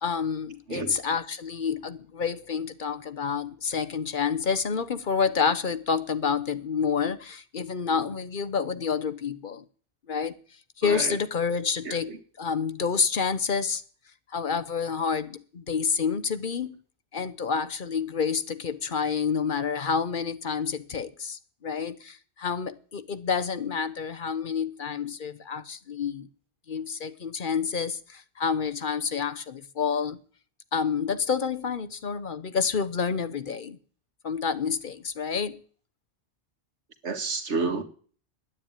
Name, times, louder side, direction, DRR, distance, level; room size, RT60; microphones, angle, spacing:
voice 1, 0.0-9.6 10.1-10.4 10.8-12.1 12.4-13.8 14.3-16.8 17.1-26.3 26.7-30.2 30.7-33.8 34.2-35.6, left 6 dB, 50° left, 0.9 m, -28 dB
voice 2, 10.8-11.2 11.9-12.2 37.0-37.8, right 4 dB, 85° right, 1.9 m, -30 dB
10.5 x 9.7 x 8.8 m
omnidirectional pair, 1.1 m